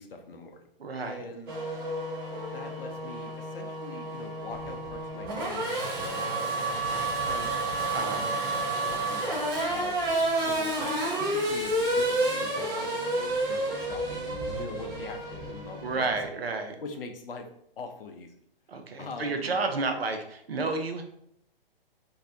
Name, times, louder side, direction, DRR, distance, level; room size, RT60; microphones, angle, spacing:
voice 1, 0.0-0.6 1.0-1.5 2.5-7.6 8.0-10.0 10.4-12.9 13.2-16.2 16.8-17.5 17.8-18.3 19.0-19.6, left 3 dB, 65° left, 4 dB, 0.5 m, -42 dB
voice 2, 0.8-1.2 7.9-8.3 15.8-16.8 18.7-21.0, right 3 dB, 75° right, 5 dB, 0.5 m, -31 dB
Race car auto racing / Accelerating revving vroom, 1.5-16.3, right 2 dB, 25° right, 0.5 m, -30 dB
2.6 x 2.0 x 2.6 m, 0.70 s
figure-of-eight pair, 120°, 30 cm